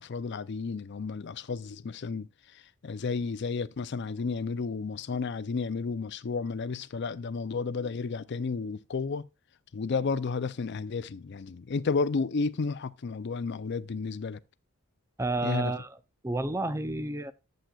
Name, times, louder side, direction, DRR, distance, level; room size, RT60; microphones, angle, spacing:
voice 1, 0.0-9.2 9.7-14.4 15.4-15.7, left 4 dB, 50° left, 0.4 m, -32 dB
voice 2, 15.2-15.9 16.2-17.3, right 2 dB, 10° right, 0.4 m, -30 dB
11.5 x 7.6 x 2.3 m
head